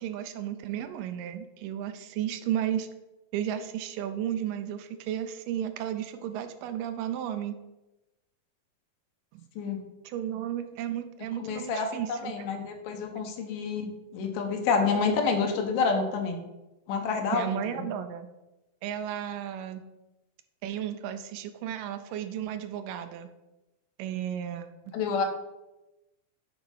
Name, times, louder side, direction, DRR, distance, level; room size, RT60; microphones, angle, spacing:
voice 1, 0.0-2.9 3.3-7.6 9.3-9.5 10.1-12.5 13.2-13.3 17.3-18.3 18.8-19.8 20.6-23.3 24.0-25.0, right 10 dB, 85° right, 9 dB, 2.2 m, -33 dB
voice 2, 11.4-16.4 16.9-17.6 24.9-25.3, left 5 dB, 75° left, 4 dB, 2.6 m, -28 dB
8.8 x 4.2 x 5.4 m, 0.99 s
omnidirectional pair, 3.9 m